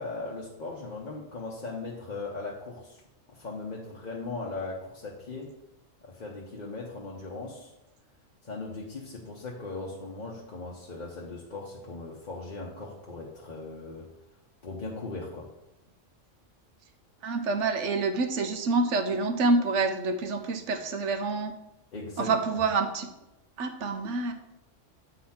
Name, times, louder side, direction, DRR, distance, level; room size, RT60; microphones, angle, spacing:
voice 1, 0.0-3.0 3.3-5.5 6.0-7.7 8.4-14.1 14.6-15.5 21.9-22.3, left 3 dB, 45° left, -3 dB, 1.0 m, -38 dB
voice 2, 17.2-21.5 22.2-23.1 23.6-24.3, right 3 dB, 75° right, 7 dB, 1.1 m, -27 dB
8.5 x 4.1 x 4.3 m, 0.91 s
omnidirectional pair, 1.3 m